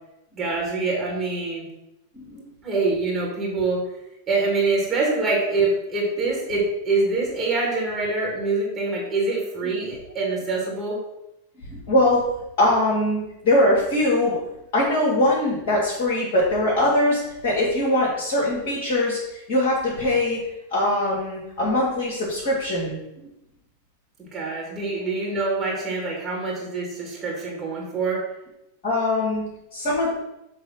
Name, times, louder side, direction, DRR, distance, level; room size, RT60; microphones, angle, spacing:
voice 1, 0.3-1.7 2.6-3.8 4.3-11.0 24.2-28.2, right 3 dB, 20° right, -3 dB, 2.2 m, -25 dB
voice 2, 11.7-12.2 12.6-14.4 14.7-20.4 20.7-23.0 28.8-29.4 29.7-30.1, left 1 dB, 45° left, -6 dB, 2.2 m, -22 dB
7.2 x 3.3 x 5.5 m, 0.88 s
figure-of-eight pair, 90°, 0 cm